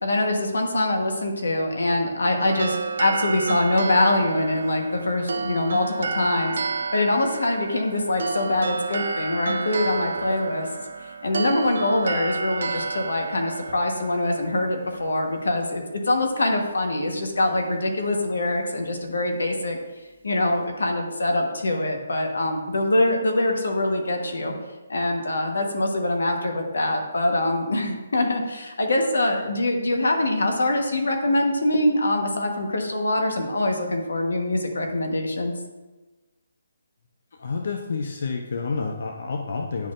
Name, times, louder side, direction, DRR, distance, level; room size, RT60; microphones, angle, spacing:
voice 1, 0.0-6.6 6.9-10.7 11.2-19.8 20.2-24.5 24.9-35.5, left 1 dB, 90° left, 3 dB, 1.2 m, -24 dB
sound 1, 2.4-15.6, right 4 dB, 65° right, 0.5 m, -31 dB
voice 2, 37.4-39.9, left 4 dB, 55° left, 3 dB, 0.6 m, -29 dB
10.5 x 4.2 x 2.5 m, 1.2 s
hypercardioid pair, 165°, 0 cm